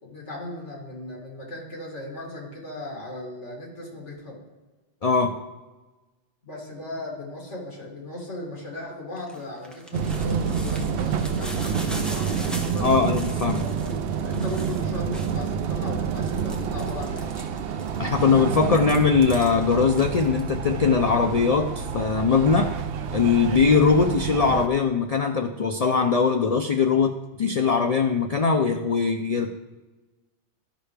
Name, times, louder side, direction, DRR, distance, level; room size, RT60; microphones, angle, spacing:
voice 1, 0.0-4.4 6.4-13.0 13.6-17.4 27.3-27.4, left 2 dB, 80° left, -2 dB, 2.4 m, -37 dB
voice 2, 5.0-5.3 12.8-13.6 18.0-22.7 23.1-29.5, left 5 dB, 60° left, 5 dB, 0.4 m, -21 dB
sound 1, 9.2-15.6 16.1-18.2 18.6-20.4, equal, ahead, 0.7 m, -40 dB
sound 2, 9.9-24.7, right 7 dB, 65° right, 0.7 m, -28 dB
12.5 x 5.6 x 3.3 m, 1.2 s
omnidirectional pair, 1.2 m